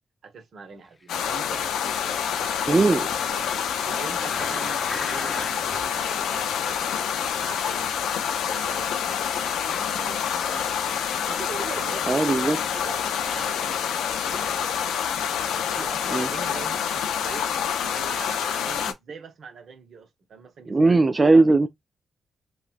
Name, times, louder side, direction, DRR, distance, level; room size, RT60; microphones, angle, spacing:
voice 1, 0.2-2.9 3.3-9.4 9.7-10.7 11.3-15.0 15.5-21.6, right 5 dB, 70° right, 0.8 m, -42 dB
sound 1, 1.1-18.9, left 8 dB, 80° left, 0.4 m, -27 dB
sound 2, 2.4-5.9 6.5-6.6, left 2 dB, 35° left, 0.7 m, -39 dB
voice 2, 2.7-3.1 12.1-12.6 16.1-16.3 20.7-21.7, right 3 dB, 35° right, 0.3 m, -18 dB
3.5 x 2.2 x 2.4 m
hypercardioid pair, 40°, 0 cm